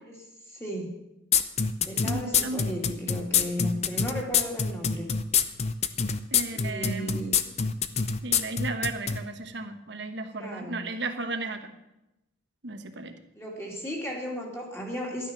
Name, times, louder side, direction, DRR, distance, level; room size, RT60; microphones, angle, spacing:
voice 1, 0.5-1.0 1.8-5.1 6.5-7.4 10.3-10.9 13.3-15.3, equal, 15° left, -1 dB, 2.5 m, -35 dB
sound 1, 1.3-9.2, left 7 dB, 35° left, 0.6 m, -25 dB
voice 2, 2.0-2.6 6.3-7.2 8.2-11.7 12.6-13.1, right 3 dB, 60° right, 7 dB, 1.2 m, -34 dB
12.5 x 9.4 x 6.0 m, 0.90 s
head